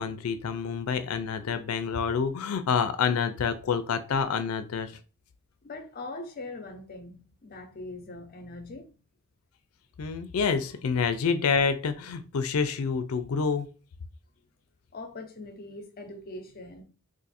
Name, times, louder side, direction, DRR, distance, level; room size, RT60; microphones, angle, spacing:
voice 1, 0.0-4.9 10.0-13.7, left 6 dB, 90° left, 0.4 m, -28 dB
voice 2, 5.6-9.0 14.9-16.8, left 2 dB, 45° left, 0.6 m, -41 dB
2.6 x 2.6 x 4.0 m
head